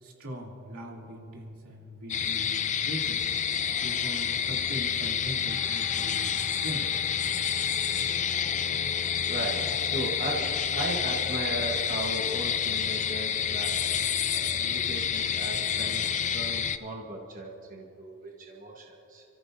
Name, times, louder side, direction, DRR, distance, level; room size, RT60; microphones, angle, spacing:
voice 1, 0.0-3.2 3.8-6.9, equal, 75° right, -2 dB, 2.8 m, -40 dB
sound 1, 2.1-16.8, left 8 dB, 35° left, 0.4 m, -29 dB
sound 2, 5.5-14.1 14.5-14.6, left 4 dB, 60° left, 2.0 m, -48 dB
voice 2, 9.3-13.8 14.3-16.0 16.3-19.2, right 1 dB, 40° right, -1 dB, 1.2 m, -36 dB
29.5 x 14.5 x 2.7 m, 3.0 s
head